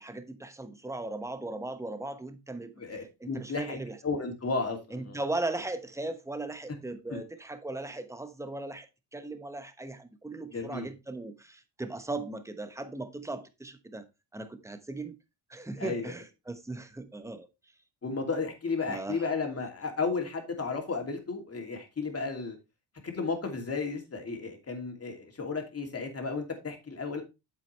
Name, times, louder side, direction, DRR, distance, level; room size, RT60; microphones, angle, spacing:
voice 1, 0.0-2.7 3.2-4.0 4.9-14.0 14.3-15.2 15.5-17.5 18.9-19.3, right 2 dB, 5° right, 1.1 m, -38 dB
voice 2, 2.8-5.2 7.1-7.2 10.5-10.9 15.8-16.1 18.0-22.6 23.0-27.2, left 4 dB, 30° left, 2.8 m, -33 dB
8.7 x 7.6 x 3.3 m
cardioid pair, 105°, 46 cm